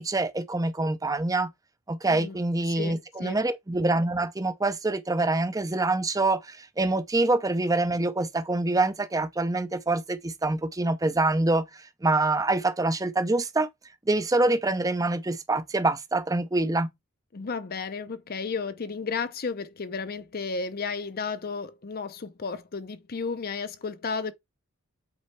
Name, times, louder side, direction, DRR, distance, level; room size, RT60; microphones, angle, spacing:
voice 1, 0.0-1.5 1.9-13.7 14.1-16.9, right 2 dB, 15° right, 0.5 m, -25 dB
voice 2, 2.7-3.4 17.3-24.3, left 4 dB, 45° left, 0.6 m, -33 dB
8.3 x 4.2 x 3.2 m
head